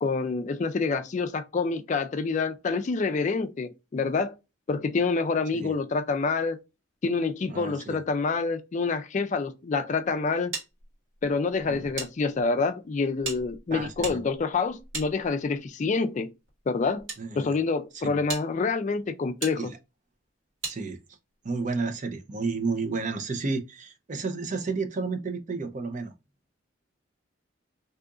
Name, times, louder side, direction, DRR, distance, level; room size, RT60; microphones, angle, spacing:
voice 1, 0.0-4.4 4.7-6.6 7.0-10.6 11.2-16.3 16.7-17.1 17.4-19.7, left 4 dB, 40° left, 0.3 m, -27 dB
voice 2, 7.5-8.0 11.7-11.9 13.7-14.2 17.2-17.6 18.0-18.2 19.6-19.8 20.7-21.0 21.4-26.1, right 4 dB, 40° right, 0.5 m, -31 dB
sound 1, 10.5-12.1 12.4-12.5 13.2-15.7 16.5-17.2 17.8-17.9 18.3-18.5 19.4-19.6 20.6-20.8, right 3 dB, 85° right, 1.5 m, -37 dB
2.7 x 2.4 x 3.6 m
head